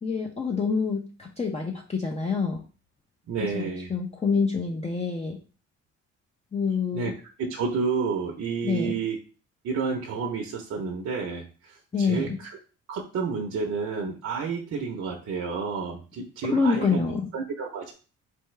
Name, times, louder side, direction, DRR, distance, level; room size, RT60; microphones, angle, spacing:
voice 1, 0.0-2.6 3.5-5.4 6.5-7.1 8.6-9.0 11.9-12.4 16.4-17.3, left 5 dB, 20° left, 0 dB, 0.7 m, -26 dB
voice 2, 3.3-3.9 6.9-7.1 7.4-9.2 9.6-12.5 12.9-17.0 17.3-17.9, right 5 dB, 60° right, 0 dB, 0.9 m, -30 dB
4.4 x 3.5 x 3.2 m, 0.36 s
cardioid pair, 90°, 30 cm